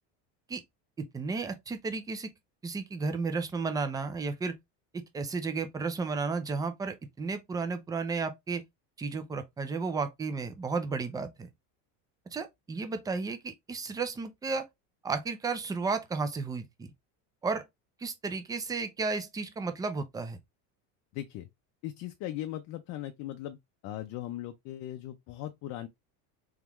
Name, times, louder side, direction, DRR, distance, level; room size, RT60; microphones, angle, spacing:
voice 1, 1.0-2.3 2.6-4.5 4.9-8.6 9.0-11.5 12.3-14.7 15.0-16.9 17.4-17.7 18.0-20.4, right 4 dB, 10° right, 0.5 m, -33 dB
voice 2, 21.1-21.5 21.8-23.6 23.8-25.9, left 13 dB, 45° left, 0.5 m, -38 dB
3.6 x 3.5 x 3.0 m
cardioid pair, 150°, 39 cm